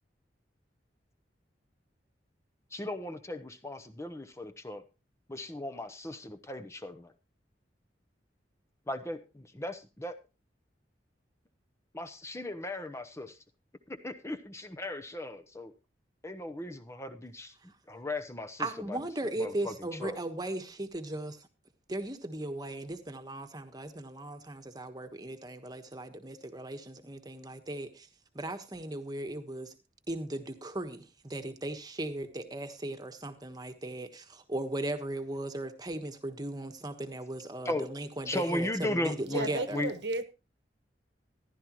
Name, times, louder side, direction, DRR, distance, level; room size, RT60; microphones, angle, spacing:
voice 1, 2.7-4.8 5.3-7.1 8.9-10.2 11.9-13.4 13.9-15.7 16.2-19.0 19.3-20.2 37.6-37.9 38.2-39.9, left 1 dB, 15° left, 0.9 m, -37 dB
voice 2, 18.6-21.4 21.9-28.1 28.3-29.7 30.1-39.8, right 1 dB, 20° right, 1.3 m, -37 dB
voice 3, 39.3-40.2, right 2 dB, 70° right, 1.2 m, -33 dB
15.0 x 11.5 x 3.1 m
head